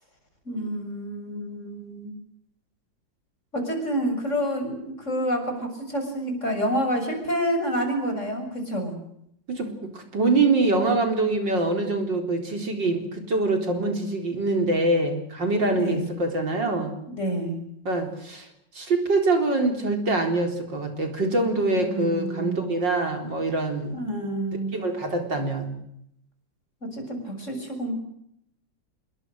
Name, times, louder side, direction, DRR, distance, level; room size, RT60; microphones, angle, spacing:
voice 1, 0.5-2.1 3.5-8.9 15.7-16.1 17.1-17.6 21.8-22.7 23.9-24.7 26.9-28.0, equal, 40° left, 5 dB, 7.1 m, -28 dB
voice 2, 9.5-17.0 17.8-18.5 18.7-24.0 24.7-25.8, right 2 dB, 70° right, 5 dB, 4.9 m, -24 dB
27.0 x 23.0 x 6.6 m, 0.74 s
omnidirectional pair, 2.0 m